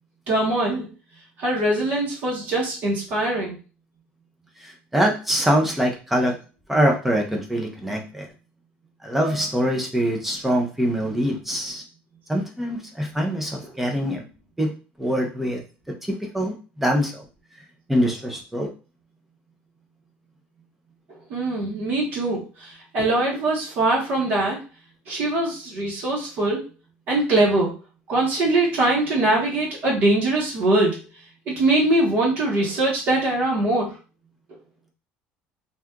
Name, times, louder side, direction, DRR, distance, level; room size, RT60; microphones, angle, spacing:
voice 1, 0.3-0.9 1.4-3.6 18.0-18.1 21.3-24.6 25.1-26.6 27.1-27.7 28.1-31.0 31.5-33.9, right 2 dB, 45° right, -3 dB, 0.9 m, -22 dB
voice 2, 4.6-6.4 6.7-8.3 9.0-11.8 12.3-14.2 14.6-14.7 15.0-15.6 16.1-17.2 17.9-18.7, equal, 5° right, 1 dB, 0.5 m, -23 dB
2.8 x 2.3 x 3.5 m, 0.34 s
cardioid pair, 175°, 4 cm